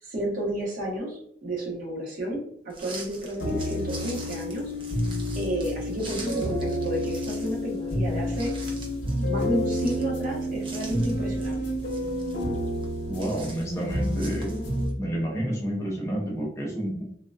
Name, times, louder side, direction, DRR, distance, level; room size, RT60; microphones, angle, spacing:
voice 1, 0.0-4.7 5.3-8.5 9.2-11.7, right 1 dB, 50° right, -3 dB, 0.9 m, -31 dB
hojas secas, 2.7-14.9, right 2 dB, 30° right, 0.5 m, -45 dB
sound 1, 3.4-14.9, equal, 65° left, 0.7 m, -29 dB
voice 2, 13.1-14.5 15.0-17.0, right 1 dB, 15° left, -3 dB, 0.8 m, -29 dB
3.7 x 2.2 x 2.3 m, 0.68 s
head